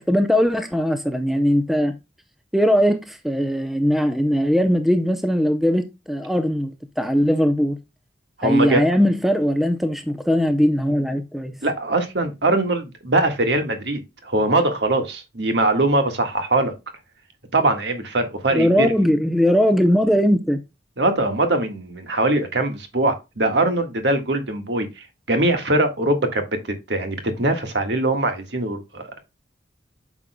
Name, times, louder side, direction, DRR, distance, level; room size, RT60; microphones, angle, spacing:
voice 1, 0.0-2.0 2.5-7.8 8.4-11.6 18.5-20.6, equal, ahead, 0.6 m, -20 dB
voice 2, 8.4-8.8 11.6-16.7 17.5-18.9 21.0-24.9 25.3-26.4 26.9-29.2, right 2 dB, 65° right, 1.6 m, -22 dB
8.9 x 6.2 x 2.2 m
head